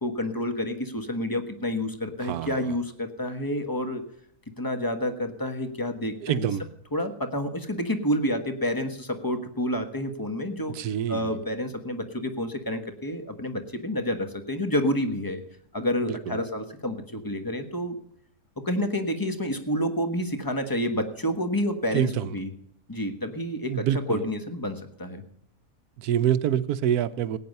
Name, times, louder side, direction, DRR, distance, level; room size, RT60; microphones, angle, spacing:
voice 1, 0.0-4.0 4.6-6.5 6.9-15.4 15.7-17.9 18.6-22.5 22.9-25.2, left 1 dB, 15° left, 7 dB, 1.2 m, -29 dB
voice 2, 2.2-2.6 6.2-6.6 10.7-11.2 16.3-16.4 21.9-22.3 23.7-24.2 26.0-27.4, right 10 dB, 75° right, 14 dB, 1.2 m, -26 dB
16.5 x 9.4 x 5.3 m, 0.74 s
omnidirectional pair, 1.6 m